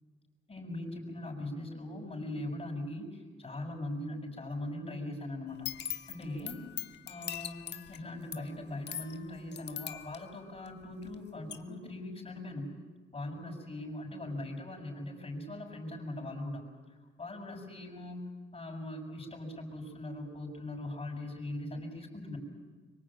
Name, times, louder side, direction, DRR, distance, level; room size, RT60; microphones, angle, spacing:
voice 1, 0.5-5.7 6.1-6.6 7.1-12.7 13.1-16.7 17.2-18.3 18.5-22.4, left 1 dB, 30° left, 1 dB, 6.7 m, -40 dB
sound 1, 5.5-11.2 11.5-11.6, left 10 dB, 60° left, 1.5 m, -42 dB
25.0 x 23.0 x 9.0 m, 1.3 s
cardioid pair, 90°, 20 cm